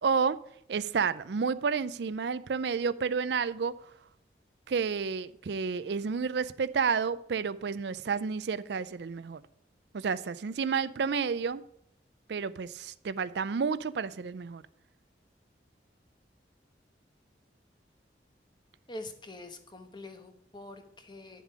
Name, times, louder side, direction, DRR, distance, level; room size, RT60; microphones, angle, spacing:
voice 1, 0.0-0.4 0.7-3.7 4.7-9.4 9.9-11.6 12.3-14.6, right 5 dB, 70° right, 0.4 m, -30 dB
voice 2, 18.9-21.4, left 2 dB, 25° left, 1.1 m, -45 dB
10.0 x 7.3 x 4.8 m
head